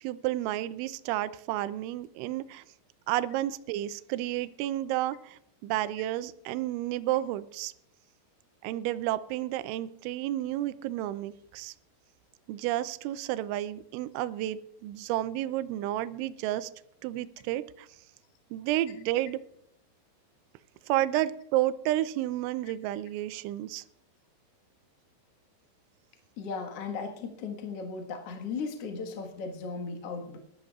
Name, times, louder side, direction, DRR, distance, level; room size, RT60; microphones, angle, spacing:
voice 1, 0.0-2.6 3.1-7.7 8.6-11.7 12.5-16.7 17.0-17.9 18.5-19.4 20.9-23.8, right 14 dB, 85° right, 14 dB, 3.0 m, -31 dB
voice 2, 26.4-30.4, left 4 dB, 90° left, 3 dB, 1.3 m, -36 dB
20.5 x 12.0 x 2.4 m, 0.73 s
omnidirectional pair, 5.3 m